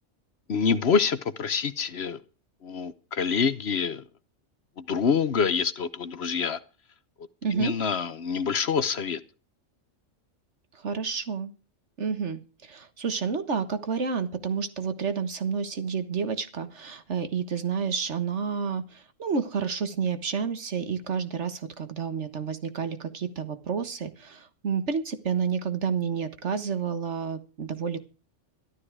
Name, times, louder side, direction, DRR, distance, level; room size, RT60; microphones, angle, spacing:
voice 1, 0.5-2.2 2.6-4.0 4.8-6.6 7.2-9.2, left 6 dB, 60° left, 14 dB, 1.1 m, -26 dB
voice 2, 7.4-7.7 10.7-11.5 12.0-28.0, right 6 dB, 65° right, 10 dB, 1.7 m, -30 dB
14.0 x 12.5 x 4.7 m, 0.35 s
omnidirectional pair, 1.3 m